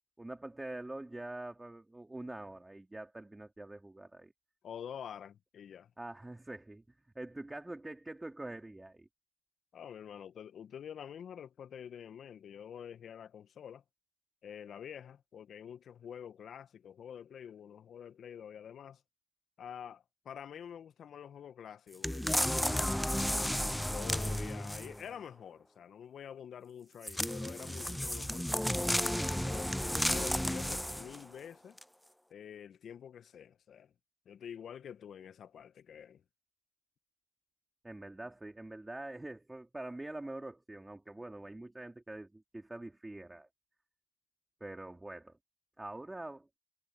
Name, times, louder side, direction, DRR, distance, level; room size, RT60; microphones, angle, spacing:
voice 1, 0.2-4.3 6.0-9.1 37.8-43.5 44.6-45.3 45.8-46.5, right 2 dB, 15° right, 3.6 m, -45 dB
voice 2, 4.6-5.9 9.7-13.8 14.4-19.0 19.6-23.1 23.7-29.7 30.1-31.8 32.3-33.9 34.2-36.2, left 8 dB, 60° left, 1.4 m, -48 dB
sound 1, 22.0-25.0 27.0-31.2 31.8-31.9, equal, 5° left, 0.5 m, -33 dB
supercardioid pair, 60°, 0 cm